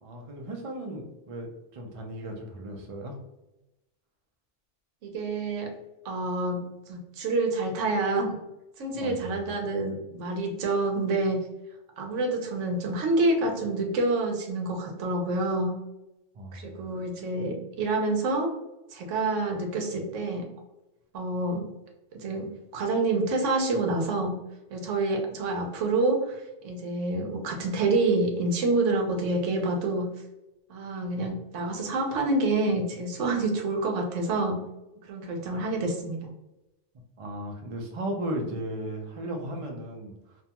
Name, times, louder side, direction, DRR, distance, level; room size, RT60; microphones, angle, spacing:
voice 1, 0.0-3.2 8.9-9.5 16.3-16.8 37.2-40.4, right 1 dB, 50° right, 2 dB, 0.4 m, -36 dB
voice 2, 5.0-5.7 6.0-8.4 8.8-11.4 12.0-15.8 16.5-18.5 18.9-20.5 21.1-21.7 22.1-22.5 22.7-24.4 24.7-30.1 30.7-34.6 35.1-36.3, right 2 dB, 85° right, 2 dB, 1.0 m, -27 dB
2.5 x 2.2 x 2.8 m, 0.95 s
omnidirectional pair, 1.2 m